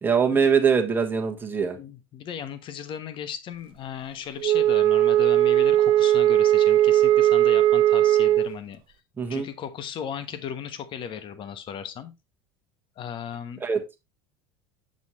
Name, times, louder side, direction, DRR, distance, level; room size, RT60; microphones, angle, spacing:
voice 1, 0.0-1.8 9.2-9.5 13.6-13.8, right 6 dB, 15° right, 1.3 m, -22 dB
voice 2, 1.7-8.8 9.3-12.1 13.0-13.6, left 8 dB, 40° left, 1.1 m, -36 dB
Wind instrument woodwind instrument, 4.4-8.6, right 12 dB, 45° right, 0.3 m, -19 dB
7.1 x 6.4 x 3.0 m
supercardioid pair, 120°, 13 cm